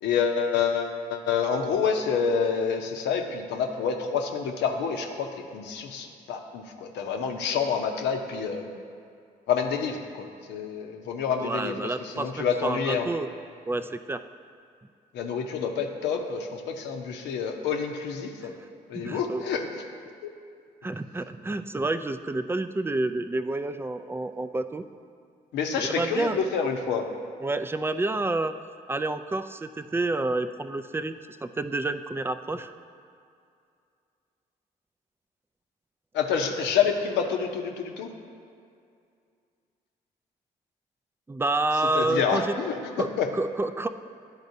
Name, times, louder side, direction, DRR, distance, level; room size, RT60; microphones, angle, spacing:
voice 1, 0.0-8.7 9.5-11.7 12.0-13.1 15.1-18.5 18.9-19.7 20.2-20.3 25.5-27.0 36.1-38.1 41.9-43.3, left 6 dB, 75° left, 4 dB, 0.7 m, -28 dB
voice 2, 11.4-13.3 13.7-14.2 18.4-18.5 18.9-19.4 20.8-24.8 25.8-26.4 27.4-28.5 28.9-31.1 31.4-32.7 41.3-42.5 43.0-43.1 43.3-43.9, right 2 dB, 15° right, 10 dB, 0.3 m, -29 dB
10.5 x 4.0 x 2.7 m, 2.4 s
supercardioid pair, 55°, 18 cm